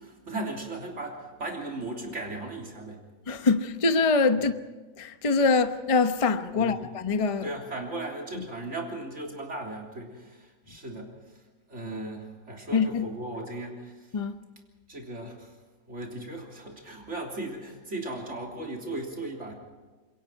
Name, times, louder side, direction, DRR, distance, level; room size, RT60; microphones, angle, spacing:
voice 1, 0.0-3.0 6.5-6.8 7.4-11.1 11.7-13.9 14.9-15.5 15.9-19.5, right 2 dB, 35° right, 3.6 m, -37 dB
voice 2, 3.3-4.5 5.0-7.5 8.4-8.5 12.7-13.1 14.1-14.4, left 4 dB, 40° left, 0.4 m, -24 dB
27.5 x 22.5 x 4.7 m
omnidirectional pair, 2.0 m